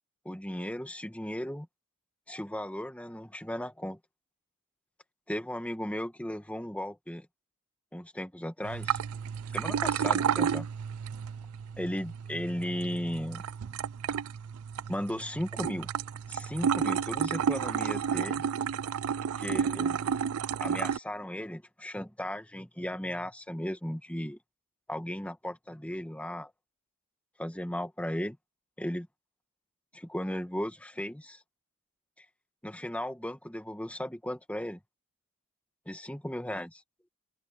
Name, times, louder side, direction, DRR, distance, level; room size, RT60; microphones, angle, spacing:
voice 1, 0.2-1.7 2.3-4.0 5.3-7.3 7.9-9.0 9.5-10.7 11.8-13.4 14.9-15.9 16.3-18.4 19.4-20.2 20.6-24.4 24.9-26.5 27.4-28.4 28.8-29.1 29.9-31.4 32.2-32.3 32.6-34.8 35.8-36.8, equal, 5° left, 1.6 m, -36 dB
sound 1, 8.6-21.0, right 7 dB, 85° right, 0.4 m, -31 dB
open air
head